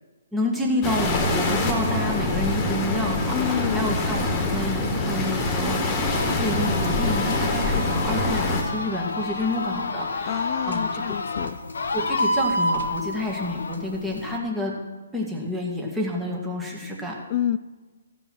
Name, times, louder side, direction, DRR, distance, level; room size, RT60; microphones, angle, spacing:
voice 1, 0.3-11.0 11.9-14.7 15.1-17.2, left 1 dB, 10° right, -1 dB, 2.0 m, -29 dB
sound 1, 0.8-8.6, left 2 dB, 20° left, 1.9 m, -25 dB
voice 2, 3.3-4.0 10.3-11.6 17.3-17.6, left 12 dB, 35° left, 16 dB, 0.4 m, -28 dB
sound 2, 6.1-14.4, left 2 dB, 75° left, 1.1 m, -29 dB
15.0 x 5.4 x 6.2 m, 1.3 s
hypercardioid pair, 145°, 0 cm